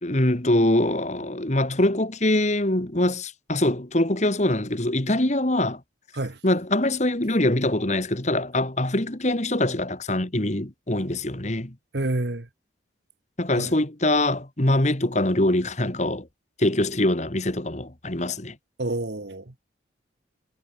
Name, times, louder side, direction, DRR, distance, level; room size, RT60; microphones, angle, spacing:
voice 1, 0.0-5.8 6.4-11.7 13.4-16.3 16.6-18.6, left 1 dB, 35° left, 1.9 m, -23 dB
voice 2, 11.9-12.5 13.6-13.7 18.8-19.6, right 2 dB, 60° right, 1.4 m, -28 dB
head